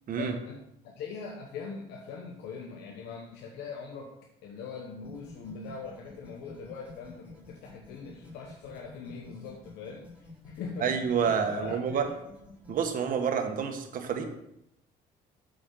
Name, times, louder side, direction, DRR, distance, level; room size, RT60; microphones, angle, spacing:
voice 1, 0.2-4.1 4.4-11.0 11.5-12.2, left 5 dB, 85° left, 1 dB, 1.1 m, -41 dB
sound 1, 5.0-12.9, left 2 dB, 10° right, 4.0 m, -52 dB
voice 2, 10.8-12.0 12.7-14.2, right 7 dB, 55° right, 5 dB, 1.5 m, -28 dB
7.8 x 5.4 x 6.5 m, 0.82 s
cardioid pair, 110°, 17 cm